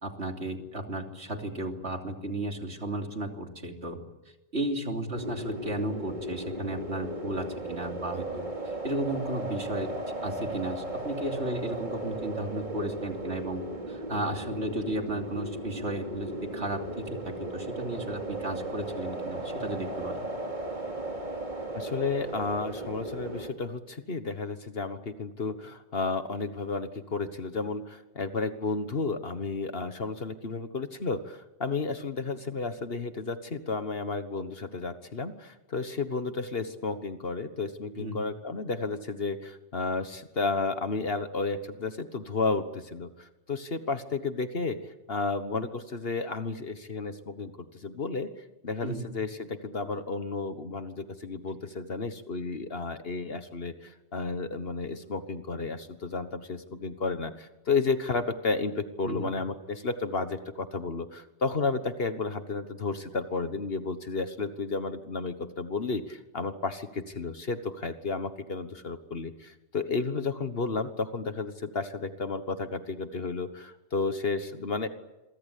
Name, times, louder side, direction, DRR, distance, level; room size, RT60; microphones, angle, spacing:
voice 1, 0.0-4.0 4.5-20.3 38.0-38.2 48.8-49.1 59.0-59.3, right 1 dB, 65° right, 3 dB, 3.3 m, -34 dB
sound 1, 5.1-23.5, right 1 dB, 40° right, 3.2 m, -36 dB
voice 2, 21.7-48.3 48.6-74.9, left 4 dB, 55° left, 10 dB, 1.6 m, -32 dB
27.5 x 23.5 x 8.4 m, 1.0 s
omnidirectional pair, 1.2 m